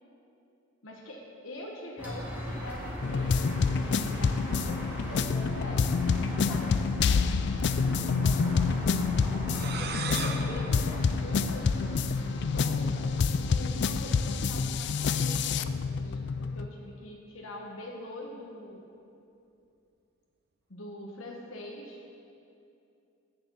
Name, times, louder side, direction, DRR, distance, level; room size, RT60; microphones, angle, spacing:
voice 1, 0.8-6.1 6.4-6.8 10.1-18.9 20.7-22.2, left 1 dB, 80° left, -1 dB, 1.1 m, -44 dB
sound 1, 2.0-14.5, equal, 10° right, 1.9 m, -39 dB
sound 2, 3.0-16.7, left 5 dB, 55° left, 0.3 m, -28 dB
voice 2, 5.1-7.0 7.5-9.0 9.8-10.6, equal, 10° left, -7 dB, 2.5 m, -46 dB
sound 3, 9.5-12.1, right 5 dB, 50° right, 0.7 m, -39 dB
9.1 x 7.0 x 7.6 m, 2.7 s
head